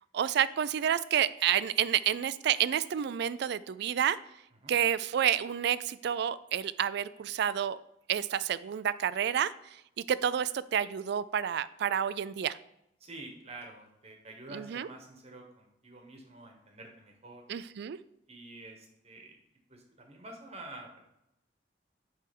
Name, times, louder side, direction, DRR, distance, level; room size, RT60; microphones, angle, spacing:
voice 1, 0.1-4.2 4.7-7.8 8.1-9.5 10.1-12.6 14.5-14.9 17.5-18.0, right 9 dB, 65° right, 17 dB, 0.3 m, -29 dB
voice 2, 13.0-17.5 18.3-19.4 19.7-21.0, right 2 dB, 35° right, 2 dB, 1.2 m, -48 dB
8.4 x 3.4 x 5.2 m, 0.82 s
head